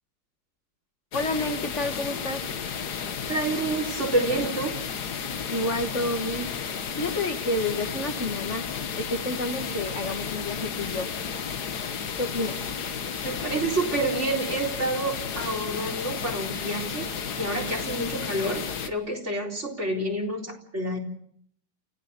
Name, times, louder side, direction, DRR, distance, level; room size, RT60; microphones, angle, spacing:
sound 1, 1.1-18.9, left 6 dB, 70° left, 1.9 m, -33 dB
voice 1, 1.1-2.4 5.5-6.5 6.9-8.7 9.0-11.1 12.2-12.6, left 1 dB, 45° left, 6 dB, 2.1 m, -29 dB
voice 2, 3.3-4.8 13.2-17.1 17.4-21.0, right 2 dB, 40° right, 1 dB, 4.5 m, -28 dB
29.5 x 16.0 x 6.9 m, 0.64 s
omnidirectional pair, 1.8 m